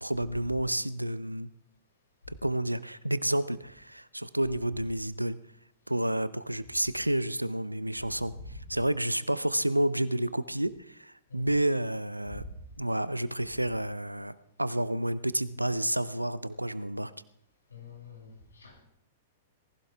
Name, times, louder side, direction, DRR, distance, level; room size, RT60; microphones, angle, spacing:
voice 1, 0.0-1.5 2.3-5.4 5.9-8.3 8.7-12.4 12.8-17.1, right 1 dB, 90° right, 16 dB, 0.7 m, -30 dB
voice 2, 17.7-18.8, left 4 dB, 75° left, -1 dB, 6.7 m, -46 dB
19.0 x 16.5 x 3.5 m, 0.75 s
figure-of-eight pair, 100°, 0 cm